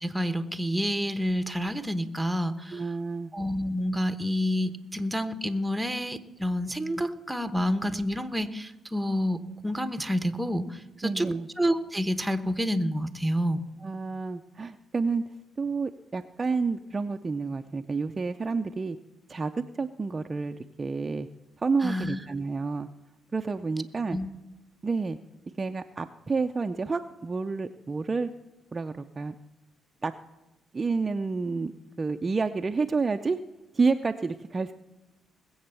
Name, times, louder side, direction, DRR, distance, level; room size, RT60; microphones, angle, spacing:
voice 1, 0.0-2.8 3.3-13.6 21.8-22.2 24.1-24.4, equal, 10° right, 10 dB, 1.1 m, -29 dB
voice 2, 2.7-3.3 11.0-11.5 13.8-15.2 15.6-19.0 19.3-21.3 21.6-22.9 23.3-24.2 24.8-25.2 25.6-28.3 28.7-29.3 30.0-30.1 30.7-31.7 32.0-33.4 33.7-34.7, right 4 dB, 30° right, 7 dB, 0.5 m, -29 dB
19.5 x 8.0 x 6.9 m, 1.1 s
cardioid pair, 90°, 0 cm